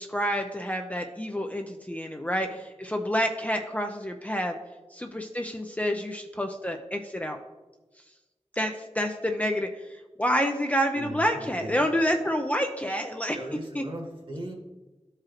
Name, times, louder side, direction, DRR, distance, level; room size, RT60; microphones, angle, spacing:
voice 1, 0.0-4.6 4.9-7.4 8.5-13.4 13.7-13.8, equal, 10° left, 3 dB, 0.6 m, -28 dB
voice 2, 10.9-11.9 13.3-14.5, right 1 dB, 45° right, 0 dB, 1.6 m, -38 dB
12.5 x 4.8 x 3.0 m, 1.2 s
wide cardioid pair, 90°, 12 cm